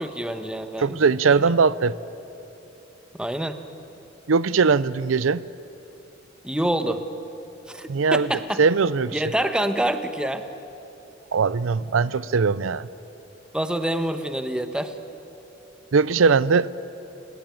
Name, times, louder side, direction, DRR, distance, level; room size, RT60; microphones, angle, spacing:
voice 1, 0.0-1.0 3.2-3.6 6.4-7.0 7.7-8.6 9.1-10.4 13.5-14.9, right 1 dB, 5° right, 8 dB, 1.1 m, -26 dB
voice 2, 0.8-1.9 4.3-5.4 7.9-8.3 8.6-9.2 11.3-12.9 15.9-16.7, right 5 dB, 80° right, 18 dB, 0.5 m, -20 dB
29.0 x 18.0 x 9.1 m, 2.9 s
head